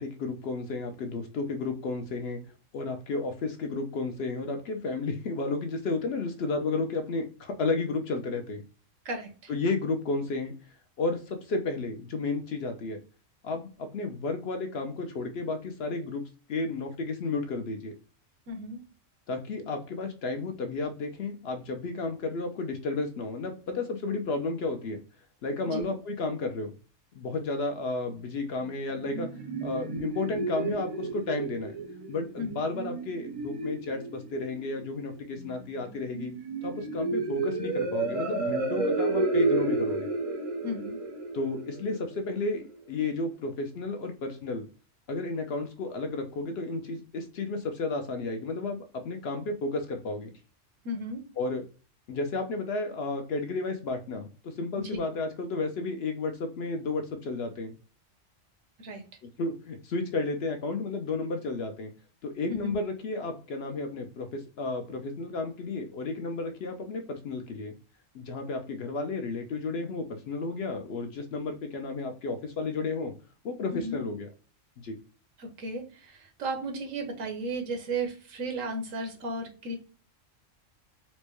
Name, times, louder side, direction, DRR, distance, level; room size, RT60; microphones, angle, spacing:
voice 1, 0.0-2.4 2.7-8.6 9.5-10.5 11.0-13.0 13.4-16.2 16.5-17.9 19.3-25.0 25.4-26.7 27.2-29.3 29.6-31.7 32.1-36.3 36.6-40.1 41.3-44.6 45.1-50.3 51.4-51.6 52.1-57.7 59.4-61.9 62.2-67.7 68.1-73.1 73.4-74.3 74.8-75.0, left 3 dB, 60° left, 5 dB, 0.8 m, -32 dB
voice 2, 9.0-9.5 18.5-18.8 25.7-25.8 32.4-32.5 40.6-41.0 50.8-51.2 54.8-55.0 58.8-59.0 62.5-62.8 73.7-74.0 75.4-79.8, right 1 dB, 80° right, 5 dB, 1.2 m, -34 dB
sound 1, 28.6-42.6, right 3 dB, 40° right, 0.5 m, -32 dB
4.4 x 2.2 x 2.9 m, 0.36 s
omnidirectional pair, 1.3 m